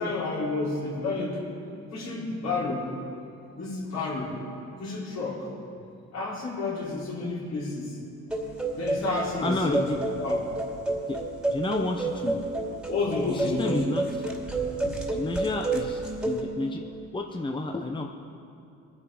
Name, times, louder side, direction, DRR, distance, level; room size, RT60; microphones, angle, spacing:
voice 1, 0.0-1.5 1.9-2.9 3.5-4.4 4.8-5.5 6.1-8.0 8.7-9.9 10.2-10.4 12.8-14.0, left 3 dB, 60° left, -4 dB, 4.0 m, -30 dB
sound 1, 8.3-16.4, right 2 dB, 5° right, 2.5 m, -30 dB
voice 2, 9.4-10.0 11.1-11.2 11.5-12.4 13.3-14.3 15.1-16.8 17.1-18.1, left 2 dB, 15° left, 3 dB, 0.9 m, -31 dB
22.0 x 9.6 x 5.0 m, 2.6 s
cardioid pair, 90°, 30 cm